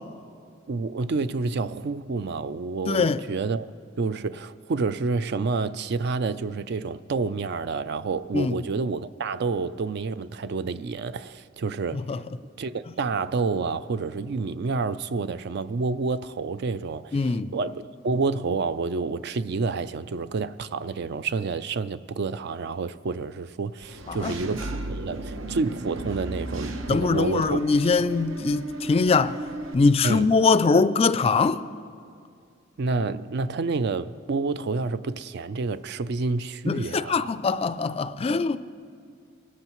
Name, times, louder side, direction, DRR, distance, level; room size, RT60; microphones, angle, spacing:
voice 1, 0.7-3.7 4.0-12.0 12.6-28.1 30.0-30.3 32.8-37.3, right 4 dB, 55° right, 0.4 m, -29 dB
voice 2, 2.9-3.2 8.3-8.5 12.1-12.2 17.1-17.5 24.1-24.4 26.9-29.4 29.7-31.6 36.7-38.6, left 4 dB, 30° left, 0.3 m, -22 dB
Engine / Mechanisms, 23.8-29.7, right 1 dB, 75° right, 0.9 m, -35 dB
24.5 x 13.5 x 3.0 m
head